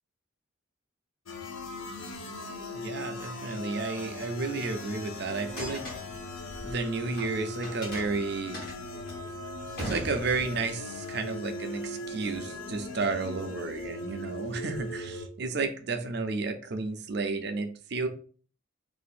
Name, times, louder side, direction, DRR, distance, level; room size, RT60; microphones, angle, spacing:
sound 1, 1.3-15.3, left 1 dB, 75° left, 0.6 m, -39 dB
voice 1, 2.7-5.8 6.6-8.6 9.8-18.1, right 3 dB, 50° right, 7 dB, 0.5 m, -32 dB
sound 2, 5.5-7.3 7.6-10.7, equal, 45° left, 1.3 m, -39 dB
2.7 x 2.5 x 4.1 m, 0.42 s
head